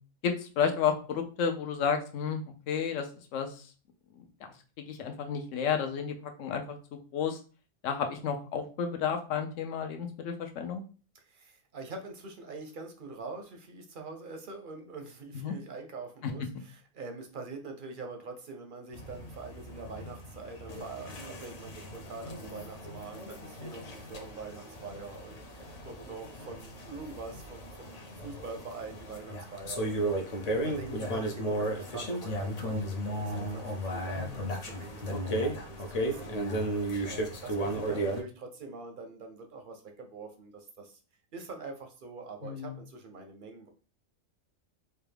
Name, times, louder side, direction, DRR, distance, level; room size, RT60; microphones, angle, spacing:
voice 1, 0.2-3.7 4.2-4.3 4.8-6.8 7.1-7.4 7.8-10.8 15.3-15.5 34.2-34.4 42.4-42.7, left 7 dB, 70° left, 5 dB, 1.0 m, -32 dB
voice 2, 11.1-36.4 37.0-41.0 41.3-43.7, right 4 dB, 55° right, 4 dB, 0.6 m, -44 dB
sound 1, 18.9-38.2, right 1 dB, 50° left, 0.4 m, -35 dB
4.2 x 2.3 x 3.3 m, 0.36 s
omnidirectional pair, 1.4 m